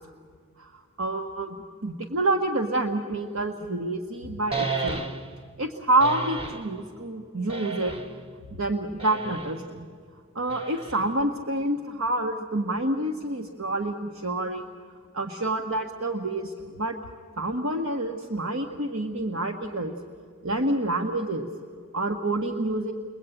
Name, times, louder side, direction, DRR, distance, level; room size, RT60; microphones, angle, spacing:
voice 1, 1.0-1.6 1.8-5.0 5.6-8.0 8.5-9.9 10.3-14.6 15.1-17.0 17.4-19.9 20.4-21.5 21.9-22.9, right 2 dB, 70° right, 4 dB, 1.4 m, -28 dB
sound 1, 4.5-5.4 6.0-6.7 7.5-8.2 9.0-9.6 10.5-11.2, right 4 dB, 25° right, 1.7 m, -33 dB
29.5 x 22.5 x 9.0 m, 2.2 s
head